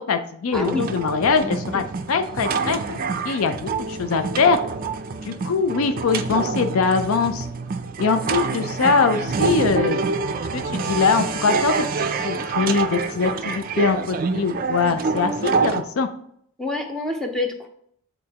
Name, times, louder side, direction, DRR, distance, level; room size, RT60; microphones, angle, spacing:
voice 1, 0.0-1.8 2.1-3.0 3.2-4.6 5.2-7.5 8.0-10.0 10.5-16.1, left 5 dB, 80° left, 8 dB, 0.5 m, -22 dB
voice 2, 0.5-0.9 1.7-1.8 16.6-17.7, left 2 dB, ahead, 2 dB, 0.7 m, -27 dB
sound 1, 0.5-15.8, right 4 dB, 40° right, 0.4 m, -26 dB
8.5 x 3.9 x 2.9 m, 0.67 s
head